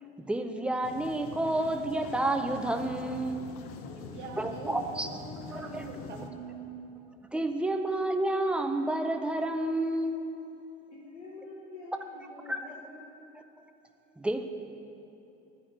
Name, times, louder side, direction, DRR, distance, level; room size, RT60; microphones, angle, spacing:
voice 1, 0.2-3.5 4.4-5.1 5.5-5.8 7.3-10.3 12.5-12.7 14.2-14.5, right 1 dB, 5° right, 6 dB, 0.5 m, -30 dB
sound 1, 0.8-6.3, left 5 dB, 40° left, 0.7 m, -44 dB
voice 2, 3.9-7.0, right 5 dB, 75° right, 2 dB, 1.0 m, -43 dB
voice 3, 10.9-13.0, left 3 dB, 80° left, -4 dB, 1.0 m, -46 dB
10.5 x 4.9 x 7.3 m, 2.9 s
figure-of-eight pair, 60°, 35 cm